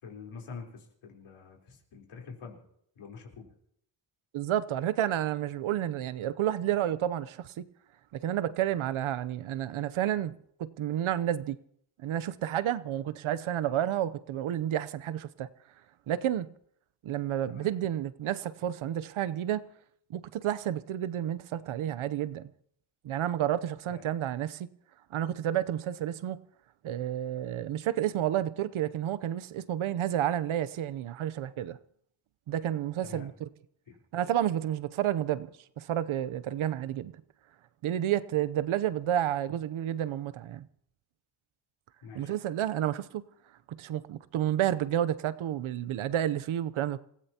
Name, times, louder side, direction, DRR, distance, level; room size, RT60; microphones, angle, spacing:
voice 1, 0.0-2.6 3.0-3.5 17.5-17.7 23.9-24.0 33.0-33.3 33.9-34.0 42.0-42.3, left 5 dB, 85° left, 4.0 m, -46 dB
voice 2, 4.3-7.6 8.1-10.3 10.6-11.6 12.0-15.5 16.1-16.5 17.0-19.7 20.1-22.5 23.0-24.7 25.1-26.4 26.8-31.8 32.5-33.5 34.1-35.5 35.8-37.1 37.8-40.7 42.1-43.2 43.7-47.0, right 11 dB, 80° right, 0.8 m, -30 dB
27.5 x 16.0 x 2.9 m
cardioid pair, 90°, 48 cm